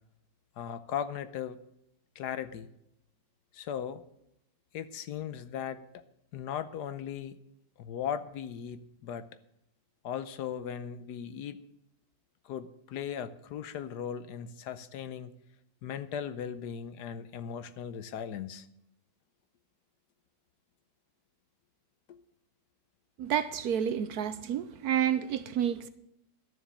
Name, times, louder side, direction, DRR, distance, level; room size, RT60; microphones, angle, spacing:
voice 1, 0.6-1.6 2.2-2.7 3.5-4.0 4.7-6.0 6.3-7.4 7.8-9.3 10.0-11.6 12.4-15.3 15.8-18.7 22.1-22.2, left 8 dB, 70° left, 1.2 m, -38 dB
voice 2, 23.2-25.9, right 9 dB, 70° right, 1.0 m, -30 dB
12.0 x 7.2 x 8.8 m
omnidirectional pair, 1.9 m